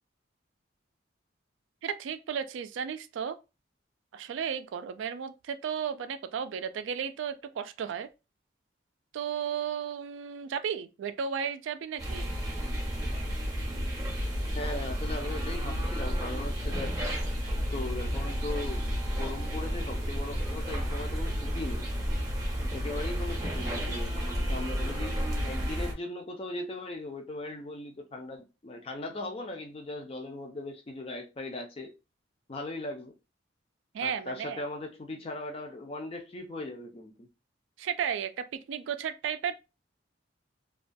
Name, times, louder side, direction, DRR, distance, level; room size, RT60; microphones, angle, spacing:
voice 1, 1.8-3.4 4.1-8.1 9.1-12.3 33.9-34.6 37.8-39.6, right 7 dB, 80° right, 0.3 m, -34 dB
sound 1, 12.0-25.9, equal, 20° right, 0.5 m, -31 dB
voice 2, 14.5-16.9 17.7-18.9 19.2-21.9 22.7-24.1 24.5-31.9 32.5-33.1 34.0-37.3, left 2 dB, 30° left, 0.4 m, -38 dB
2.3 x 2.2 x 2.5 m
head